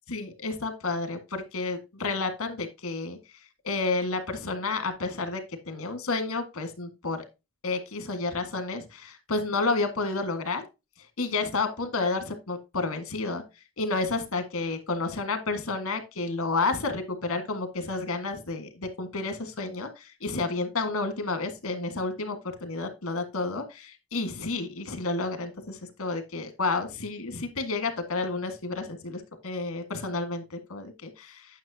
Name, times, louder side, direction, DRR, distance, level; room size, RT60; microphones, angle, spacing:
voice 1, 0.1-3.2 3.6-5.4 5.7-7.2 7.6-10.6 11.2-13.4 13.8-31.5, left 3 dB, 80° left, 8 dB, 1.7 m, -30 dB
9.4 x 6.0 x 2.8 m, 0.25 s
head